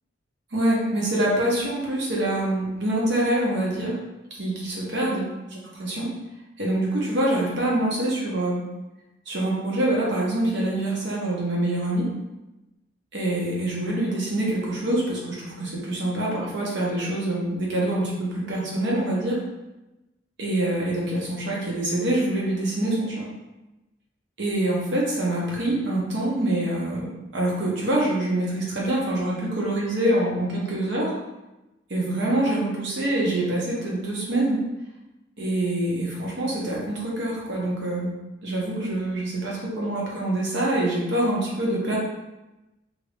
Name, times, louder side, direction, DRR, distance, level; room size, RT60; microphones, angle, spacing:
voice 1, 0.5-4.0 4.3-6.1 6.6-8.6 9.3-12.1 13.1-19.4 20.4-23.3 24.4-31.2 31.9-34.6 35.4-38.1 38.4-42.0, right 1 dB, 65° right, -4 dB, 0.9 m, -25 dB
2.8 x 2.6 x 3.3 m, 1.0 s
head